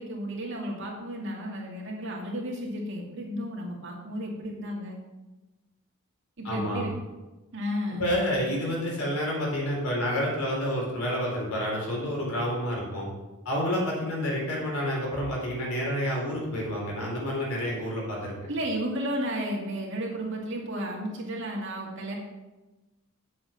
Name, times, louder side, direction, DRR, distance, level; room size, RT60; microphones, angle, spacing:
voice 1, 0.0-5.0 6.4-6.9 7.5-8.1 18.5-22.2, equal, 60° right, -1 dB, 2.4 m, -33 dB
voice 2, 6.4-6.9 8.0-13.1 13.4-18.3, equal, 90° left, -2 dB, 4.1 m, -29 dB
8.7 x 7.5 x 5.8 m, 1.1 s
head